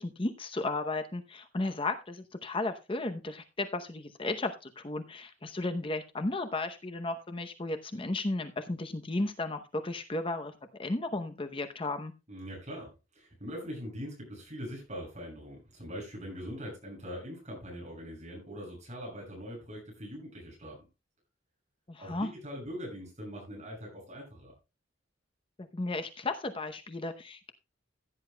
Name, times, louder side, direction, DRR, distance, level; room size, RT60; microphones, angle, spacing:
voice 1, 0.0-10.5 10.8-12.1 21.9-22.3 25.6-27.5, left 2 dB, 25° left, 8 dB, 0.8 m, -34 dB
voice 2, 12.3-20.8 22.0-24.5, equal, 35° right, -1 dB, 6.9 m, -42 dB
15.5 x 9.7 x 2.2 m, 0.27 s
head